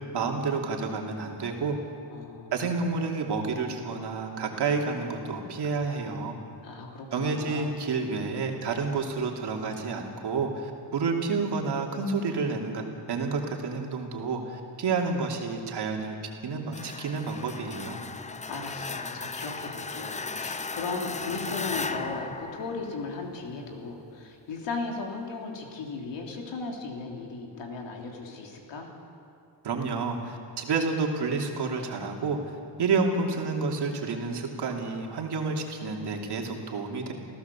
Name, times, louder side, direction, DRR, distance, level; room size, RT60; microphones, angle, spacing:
voice 1, 0.1-1.8 2.5-6.3 7.1-12.8 13.1-16.2 16.4-18.0 29.6-32.4 32.8-37.1, right 4 dB, 60° right, 1 dB, 2.9 m, -29 dB
voice 2, 2.1-3.0 6.6-7.8 18.5-28.9, left 3 dB, 70° left, 1 dB, 3.6 m, -36 dB
sound 1, 16.7-23.4, left 4 dB, 15° left, 0.5 m, -36 dB
29.5 x 15.5 x 7.2 m, 2.6 s
wide cardioid pair, 160°, 45 cm